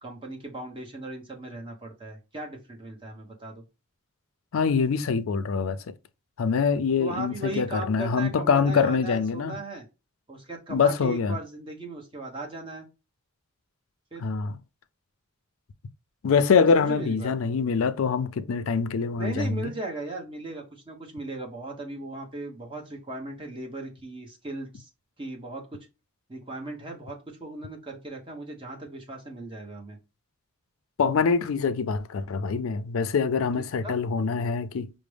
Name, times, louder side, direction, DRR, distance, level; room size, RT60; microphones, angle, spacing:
voice 1, 0.0-3.6 7.0-9.8 10.3-12.9 14.1-14.2 16.7-17.3 19.2-24.9 25.2-25.9 26.3-30.0 33.8-34.0, right 2 dB, 25° right, 1.0 m, -37 dB
voice 2, 4.5-5.9 6.4-9.6 10.7-11.4 14.2-14.6 16.2-19.7 31.0-34.9, left 5 dB, 70° left, 0.4 m, -24 dB
4.9 x 2.0 x 3.3 m
head